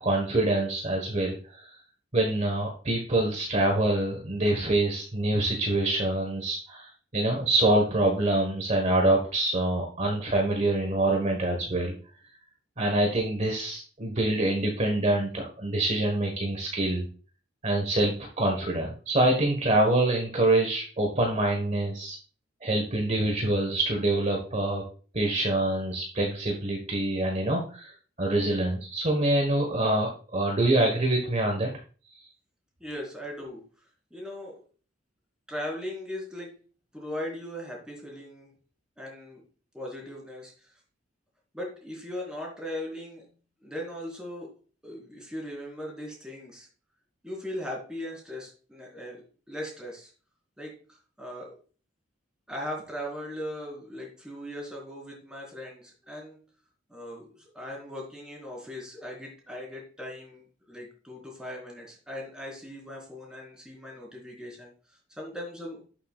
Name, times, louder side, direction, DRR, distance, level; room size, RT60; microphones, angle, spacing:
voice 1, 0.0-1.8 2.1-11.9 12.8-17.0 17.6-22.2 22.6-24.8 25.1-27.9 28.2-31.7, right 1 dB, 40° right, 1 dB, 1.4 m, -25 dB
voice 2, 32.8-33.6 34.1-34.6 35.5-36.5 36.9-38.5 39.0-39.4 39.7-40.7 41.5-43.3 43.6-44.5 44.8-46.7 47.2-50.1 50.6-51.6 52.5-56.4 56.9-64.7 65.2-65.8, left 1 dB, 5° right, -2 dB, 3.9 m, -39 dB
11.5 x 6.8 x 2.4 m, 0.38 s
head